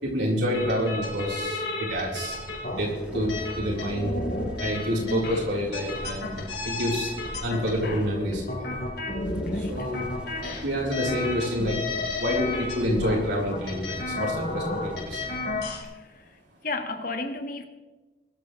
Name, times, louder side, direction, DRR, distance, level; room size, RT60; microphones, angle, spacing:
voice 1, 0.0-2.4 2.8-4.1 4.6-7.1 7.4-8.7 9.5-10.1 10.6-11.9 12.1-15.2, equal, 75° right, -3 dB, 3.9 m, -28 dB
sound 1, 0.5-15.8, left 2 dB, 65° left, 4.4 m, -32 dB
sound 2, 2.8-8.4 9.2-15.6, equal, 5° right, 2.0 m, -44 dB
voice 2, 4.9-5.3 9.5-9.9 15.8-16.4 16.6-17.6, left 2 dB, 50° left, 5 dB, 1.5 m, -34 dB
22.5 x 14.0 x 3.2 m, 1.2 s
head